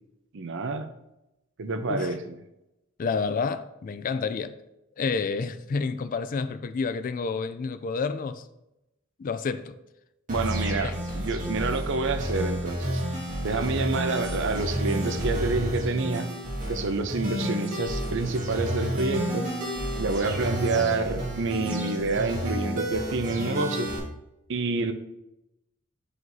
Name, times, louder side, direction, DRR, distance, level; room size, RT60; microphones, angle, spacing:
voice 1, 0.3-0.9 1.6-2.2 10.3-13.2 13.4-16.3 16.7-19.5 20.0-23.9 24.5-24.9, right 3 dB, 60° right, 0.6 m, -28 dB
voice 2, 3.0-4.6 5.0-8.5 9.2-9.7 10.8-11.2, left 4 dB, 40° left, 0.3 m, -29 dB
sound 1, 10.3-24.0, equal, 40° right, 1.8 m, -30 dB
7.6 x 4.9 x 2.7 m
head